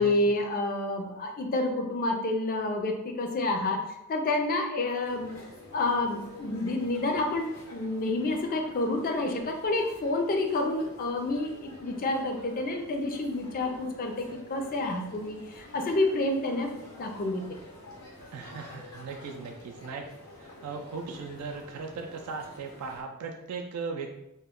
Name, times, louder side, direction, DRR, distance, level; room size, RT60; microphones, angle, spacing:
voice 1, 0.0-3.8 4.1-5.3 5.7-17.4, left 2 dB, 40° left, 3 dB, 0.4 m, -29 dB
sound 1, 5.0-23.0, left 1 dB, 80° left, 0.8 m, -49 dB
voice 2, 18.3-20.1 20.4-24.1, right 4 dB, 85° right, 3 dB, 0.3 m, -38 dB
2.2 x 2.1 x 3.6 m, 0.87 s
head